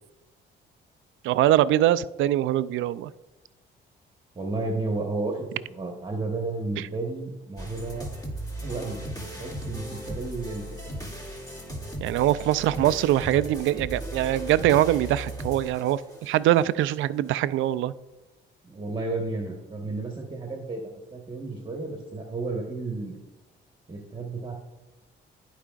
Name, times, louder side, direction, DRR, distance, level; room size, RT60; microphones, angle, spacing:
voice 1, 1.2-3.1 12.0-17.9, right 13 dB, 85° right, 16 dB, 0.4 m, -23 dB
voice 2, 4.3-8.1 8.6-9.0 9.3-10.6 18.6-20.8 21.1-23.2 23.9-24.5, right 3 dB, 25° right, 0 dB, 1.3 m, -32 dB
sound 1, 7.6-16.6, right 1 dB, 20° left, 2.4 m, -37 dB
14.5 x 4.9 x 2.4 m, 1.1 s
cardioid pair, 90°, 20 cm